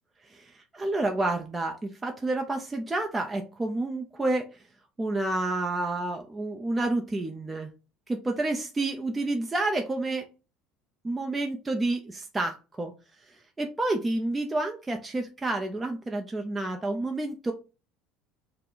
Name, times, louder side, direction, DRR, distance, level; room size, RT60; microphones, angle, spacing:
voice 1, 0.3-4.5 5.0-7.7 8.1-10.2 11.0-12.9 13.6-17.5, right 2 dB, 15° right, 3 dB, 0.6 m, -29 dB
4.4 x 2.1 x 3.8 m, 0.31 s
supercardioid pair, 100°, 0 cm